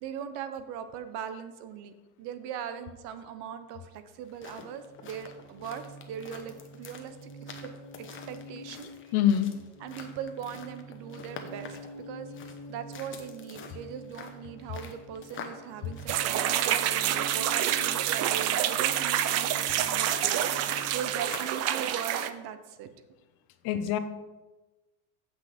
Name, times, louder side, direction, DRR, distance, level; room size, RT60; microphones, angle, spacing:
voice 1, 0.0-7.7 8.0-8.9 9.8-22.9, right 8 dB, 55° right, 10 dB, 0.9 m, -40 dB
sound 1, 4.1-21.6, left 6 dB, 25° left, 0.9 m, -48 dB
sound 2, 4.5-21.2, right 1 dB, 80° left, 2.0 m, -47 dB
voice 2, 9.1-9.5 23.6-24.0, left 10 dB, 55° left, 10 dB, 0.7 m, -24 dB
sound 3, 16.1-22.3, right 11 dB, 35° right, 0.4 m, -27 dB
7.8 x 6.1 x 5.1 m, 1.2 s
cardioid pair, 145°, 46 cm